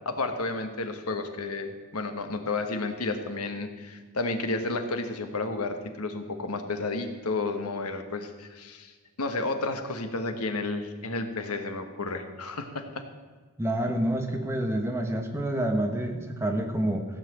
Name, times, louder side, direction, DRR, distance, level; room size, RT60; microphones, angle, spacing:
voice 1, 0.0-13.0, left 3 dB, 85° left, 7 dB, 1.3 m, -32 dB
voice 2, 13.6-17.1, right 1 dB, 10° right, 3 dB, 1.1 m, -28 dB
15.5 x 5.8 x 7.8 m, 1.4 s
head